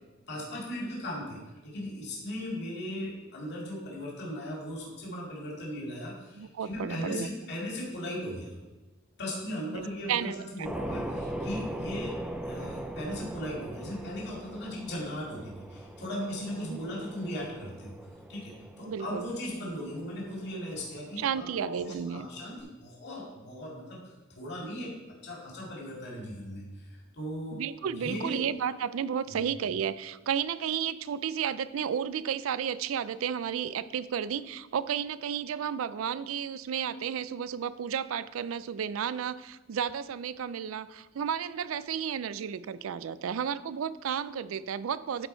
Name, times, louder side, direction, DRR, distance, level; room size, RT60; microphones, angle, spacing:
voice 1, 0.3-8.5 9.2-12.2 12.5-17.9 18.3-28.4 29.2-29.4, equal, 55° left, -3 dB, 2.3 m, -38 dB
voice 2, 6.4-7.3 9.7-10.3 16.7-16.8 18.9-19.3 21.2-22.3 27.5-45.3, right 8 dB, 90° right, 16 dB, 0.4 m, -32 dB
sound 1, 10.6-22.6, right 1 dB, 5° right, 0.5 m, -41 dB
12.0 x 4.3 x 4.5 m, 1.2 s
head